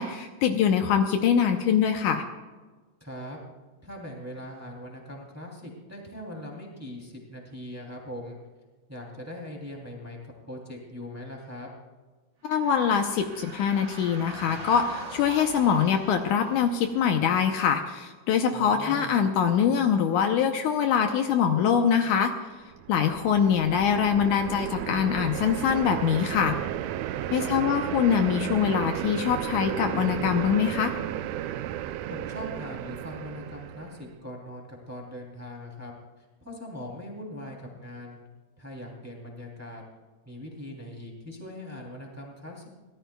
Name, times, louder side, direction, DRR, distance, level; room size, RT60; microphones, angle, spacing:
voice 1, 0.0-2.2 12.4-22.3 22.9-26.6 27.3-30.9, left 7 dB, 75° left, 5 dB, 2.2 m, -24 dB
voice 2, 3.0-3.4 3.8-8.4 8.9-11.7 18.5-19.3 27.3-27.7 32.1-35.9 36.2-38.2 38.6-39.8 40.2-42.7, left 1 dB, 5° right, -1 dB, 2.4 m, -41 dB
sound 1, 12.4-17.6, right 2 dB, 30° right, 3.8 m, -43 dB
sound 2, 22.7-34.1, right 12 dB, 90° right, 1.5 m, -33 dB
24.0 x 17.5 x 2.3 m, 1.3 s
omnidirectional pair, 3.8 m